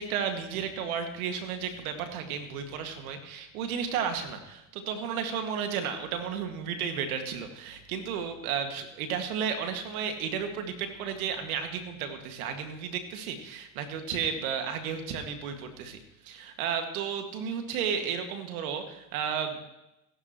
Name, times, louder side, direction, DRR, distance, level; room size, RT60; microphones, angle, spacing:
voice 1, 0.0-16.0 16.2-19.6, right 7 dB, 80° right, 6 dB, 2.1 m, -33 dB
28.0 x 11.0 x 3.1 m, 0.91 s
hypercardioid pair, 65°, 43 cm